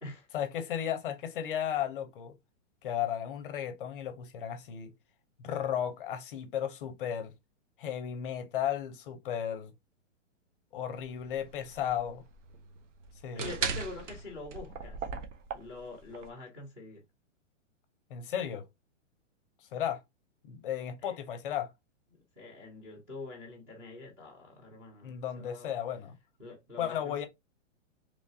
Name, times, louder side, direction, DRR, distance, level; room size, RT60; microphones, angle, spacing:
voice 1, 0.3-2.4 2.8-4.9 5.4-7.3 7.8-9.7 10.7-12.2 13.2-13.5 18.1-18.7 19.7-20.0 20.4-21.7 25.0-26.1 26.8-27.3, left 9 dB, 45° left, 0.6 m, -34 dB
sound 1, 10.9-16.3, right 5 dB, 75° right, 0.7 m, -38 dB
voice 2, 13.3-15.0 15.5-17.0 21.0-21.2 22.4-25.7 26.4-27.3, left 2 dB, 5° right, 0.4 m, -45 dB
3.0 x 2.3 x 2.6 m
hypercardioid pair, 155°, 38 cm